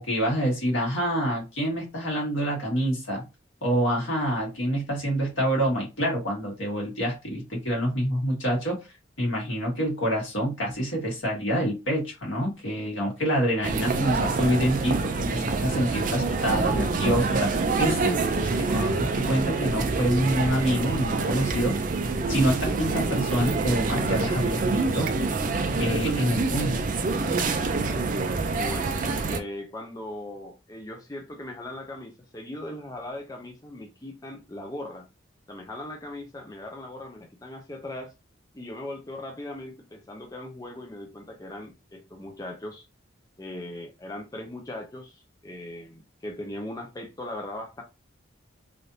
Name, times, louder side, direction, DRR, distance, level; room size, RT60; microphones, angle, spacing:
voice 1, 0.0-3.2 3.6-8.7 9.2-21.7 22.3-25.1 25.8-26.8, equal, 85° left, 1.6 m, -27 dB
sound 1, 13.6-29.4, right 3 dB, 40° right, 0.4 m, -26 dB
voice 2, 28.5-29.0 29.3-35.1 35.5-38.1 38.5-42.8 43.4-47.8, left 1 dB, 20° left, 0.4 m, -39 dB
3.3 x 2.6 x 2.7 m
head